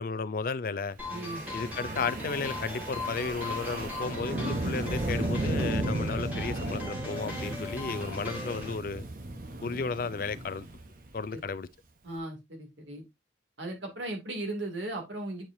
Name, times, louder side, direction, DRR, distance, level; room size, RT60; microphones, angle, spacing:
voice 1, 0.0-1.0 1.5-9.1 9.6-10.7 11.1-11.7, left 4 dB, 50° left, 0.4 m, -34 dB
sound 1, 1.0-8.7, left 2 dB, 10° right, 2.3 m, -39 dB
Wind, 1.1-11.4, right 1 dB, 45° right, 1.0 m, -35 dB
voice 2, 1.1-1.4 11.3-11.4 12.0-13.0 13.6-15.4, right 2 dB, 80° right, 2.5 m, -37 dB
8.8 x 4.7 x 2.7 m
head